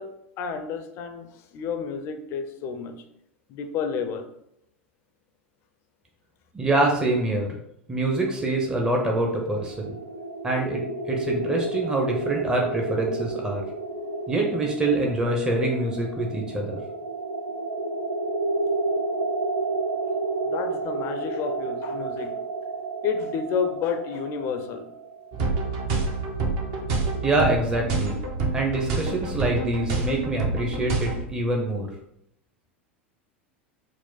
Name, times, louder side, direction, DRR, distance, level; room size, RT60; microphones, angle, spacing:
voice 1, 0.0-3.0 3.5-4.3 20.4-22.4 23.0-24.9, left 6 dB, 40° left, 0.5 m, -30 dB
voice 2, 6.5-7.5 7.9-9.9 10.4-13.6 14.3-16.8 27.2-28.1 28.5-31.9, right 2 dB, 10° right, 0.7 m, -25 dB
sound 1, 9.3-25.9, right 3 dB, 80° right, 0.4 m, -31 dB
sound 2, 25.3-31.2, right 3 dB, 50° right, 0.8 m, -27 dB
4.6 x 2.1 x 3.9 m
figure-of-eight pair, 80°, 7 cm